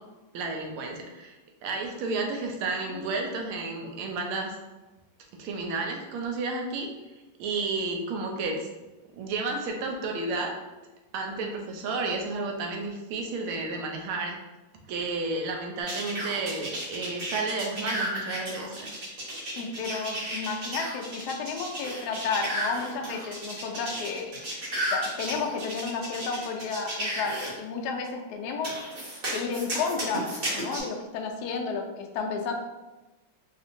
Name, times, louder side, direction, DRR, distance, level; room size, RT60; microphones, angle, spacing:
voice 1, 0.3-4.6 5.4-6.9 7.4-8.7 9.1-10.5 11.1-14.4 14.9-19.0, right 3 dB, 85° right, 2 dB, 1.5 m, -32 dB
sound 1, 15.9-27.5 28.6-30.8, right 1 dB, 60° right, 0.6 m, -33 dB
voice 2, 19.5-24.3 24.9-28.8 29.3-30.2 30.5-32.5, left 5 dB, 85° left, 2 dB, 0.8 m, -32 dB
4.3 x 2.4 x 2.5 m, 1.1 s
omnidirectional pair, 2.3 m